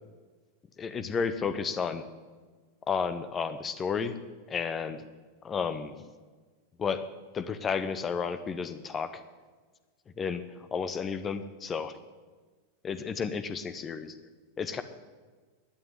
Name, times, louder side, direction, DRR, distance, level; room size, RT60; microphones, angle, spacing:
voice 1, 0.8-2.0 2.9-4.1 4.5-5.0 5.4-5.9 6.8-7.0 7.3-9.1 10.2-10.4 10.7-11.9 12.8-14.1 14.6-14.8, left 6 dB, 20° left, 11 dB, 0.8 m, -32 dB
11.5 x 9.1 x 9.7 m, 1.4 s
figure-of-eight pair, 90°, 0 cm